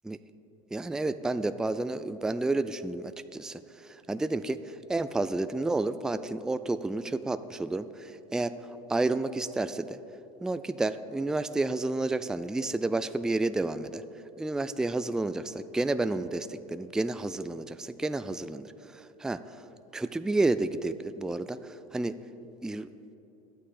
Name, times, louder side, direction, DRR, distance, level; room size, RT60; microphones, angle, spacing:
voice 1, 0.7-10.0 10.4-14.0 14.4-19.6 19.9-22.2 22.6-22.9, right 2 dB, 5° right, 12 dB, 0.3 m, -31 dB
12.5 x 8.5 x 5.0 m, 2.9 s
supercardioid pair, 95°, 18 cm